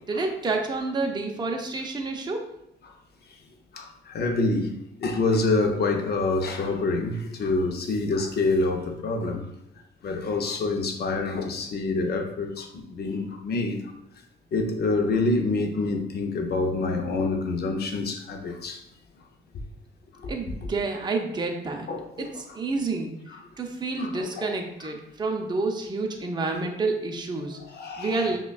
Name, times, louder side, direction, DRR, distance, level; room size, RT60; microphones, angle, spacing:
voice 1, 0.1-2.4 20.3-21.9 22.2-22.3 22.5-23.1 23.6-27.6 28.0-28.4, right 3 dB, 20° right, 2 dB, 0.5 m, -29 dB
voice 2, 3.7-4.7 5.0-9.4 10.0-13.8 14.5-18.8 20.2-20.3 21.9-22.3 24.0-24.5 27.5-28.3, left 3 dB, 55° left, 4 dB, 0.6 m, -27 dB
5.5 x 2.2 x 2.3 m, 0.80 s
cardioid pair, 90°, 20 cm